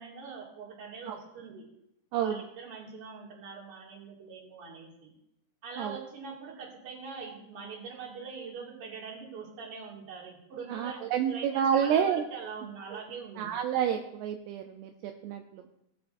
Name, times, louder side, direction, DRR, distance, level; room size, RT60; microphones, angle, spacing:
voice 1, 0.0-1.6 2.2-5.1 5.6-11.0 11.3-11.5 11.7-13.5, right 5 dB, 40° right, -3 dB, 2.6 m, -43 dB
voice 2, 2.1-2.4 5.8-6.0 10.7-12.2 12.9-13.0 13.4-15.6, right 8 dB, 80° right, 5 dB, 2.6 m, -29 dB
18.5 x 7.2 x 2.6 m, 0.81 s
omnidirectional pair, 5.0 m